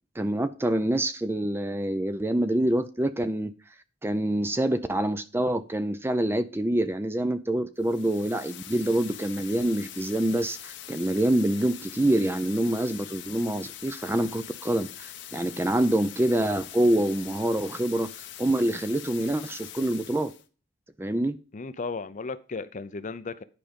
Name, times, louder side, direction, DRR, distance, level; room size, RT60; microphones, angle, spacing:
voice 1, 0.2-3.5 4.0-18.1 18.4-20.3 21.0-21.4, right 1 dB, 10° right, 0.4 m, -26 dB
sound 1, 7.8-20.5, left 11 dB, 60° left, 0.8 m, -43 dB
voice 2, 21.5-23.4, left 4 dB, 40° left, 0.5 m, -35 dB
10.0 x 5.0 x 5.2 m
head